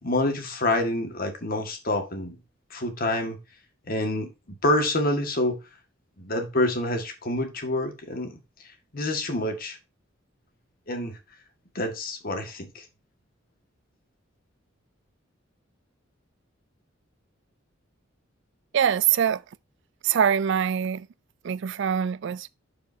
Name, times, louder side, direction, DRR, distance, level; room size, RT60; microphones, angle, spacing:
voice 1, 0.0-2.4 2.7-3.4 3.9-4.3 4.6-5.6 6.2-8.3 8.9-9.8 10.9-11.2 11.8-12.8, left 1 dB, 50° left, 1.8 m, -27 dB
voice 2, 18.7-19.4 20.0-21.1 21.4-22.5, right 8 dB, 65° right, 0.4 m, -23 dB
11.5 x 5.1 x 2.7 m
head